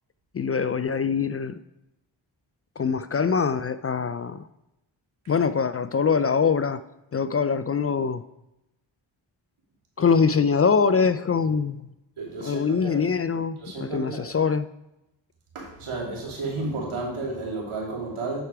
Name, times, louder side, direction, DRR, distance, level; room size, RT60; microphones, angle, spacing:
voice 1, 0.3-1.6 2.8-4.4 5.3-6.8 7.1-8.2 10.0-11.9 12.4-14.7, left 5 dB, 30° left, 13 dB, 0.4 m, -23 dB
voice 2, 12.2-13.0 13.6-14.3 15.5-18.4, right 3 dB, 85° right, -3 dB, 2.6 m, -32 dB
9.0 x 4.6 x 4.9 m, 0.91 s
cardioid pair, 45°, 49 cm